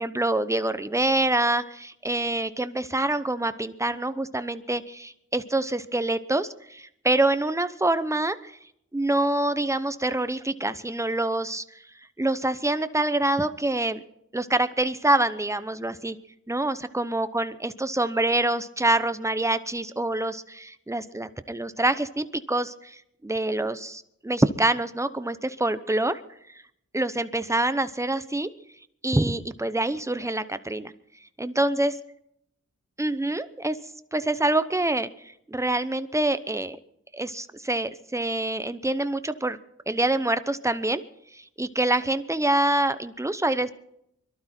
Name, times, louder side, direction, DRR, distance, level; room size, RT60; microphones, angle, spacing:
voice 1, 0.0-8.6 8.9-11.8 12.2-14.0 14.3-16.2 16.5-26.2 26.5-26.6 26.9-28.5 29.0-30.9 31.4-31.9 33.0-33.8 34.1-36.8 37.1-39.6 39.9-41.0 41.3-43.7, right 2 dB, 10° right, 12 dB, 0.8 m, -26 dB
22.5 x 12.5 x 4.4 m, 0.75 s
cardioid pair, 50°, 30 cm